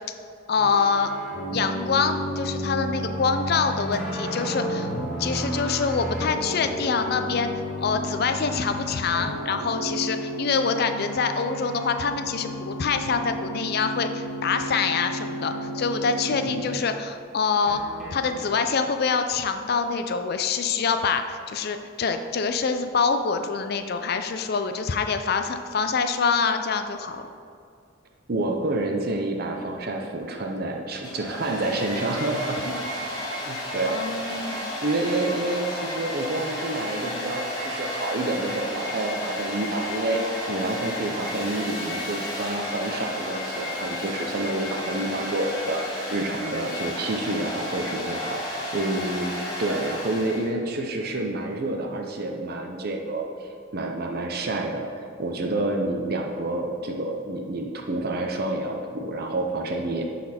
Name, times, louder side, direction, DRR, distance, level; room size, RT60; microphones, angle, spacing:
voice 1, 0.5-1.1 1.5-7.5 7.8-17.8 18.1-27.3 33.9-34.7, left 5 dB, 50° left, 8 dB, 0.4 m, -25 dB
sound 1, 0.5-16.7 17.7-18.4, equal, ahead, 1.4 m, -32 dB
voice 2, 16.3-16.6 28.3-33.1 33.5-34.0 34.8-40.2 40.5-49.3 49.6-60.0, right 2 dB, 50° right, 2 dB, 0.6 m, -28 dB
Domestic sounds home sounds, 30.9-50.5, left 1 dB, 20° left, 1.7 m, -32 dB
11.0 x 4.2 x 4.3 m, 2.4 s
head